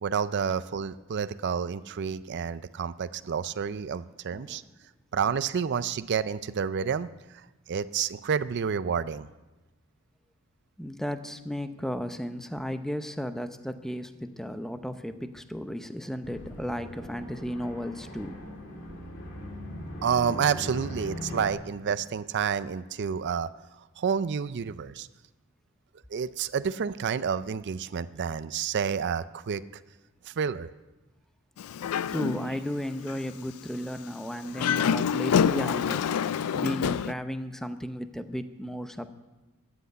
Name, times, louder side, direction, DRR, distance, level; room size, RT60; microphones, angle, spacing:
voice 1, 0.0-4.6 5.1-9.3 20.0-23.5 24.0-25.1 26.1-29.6 30.2-30.7, right 7 dB, 50° right, 14 dB, 0.4 m, -29 dB
voice 2, 4.3-4.7 10.8-18.4 32.0-36.2 36.5-39.1, equal, ahead, 9 dB, 0.7 m, -34 dB
sound 1, 16.2-21.5, left 1 dB, 55° left, 2.4 m, -40 dB
Dog, 31.6-32.7 33.1-33.2 34.4-37.1, left 7 dB, 80° left, 0.4 m, -27 dB
14.0 x 8.0 x 9.3 m, 1.1 s
head